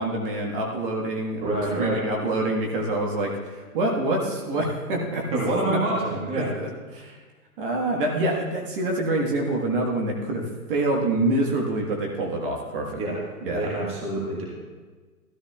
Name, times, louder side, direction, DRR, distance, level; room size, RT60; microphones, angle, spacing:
voice 1, 0.0-5.8 6.3-7.2 7.6-13.0 13.4-13.7, right 2 dB, 35° right, 0 dB, 1.4 m, -26 dB
voice 2, 1.4-2.1 5.3-6.5 13.0-13.2 13.4-14.5, right 1 dB, 10° right, -3 dB, 1.4 m, -26 dB
14.0 x 13.0 x 2.3 m, 1.4 s
hypercardioid pair, 140°, 47 cm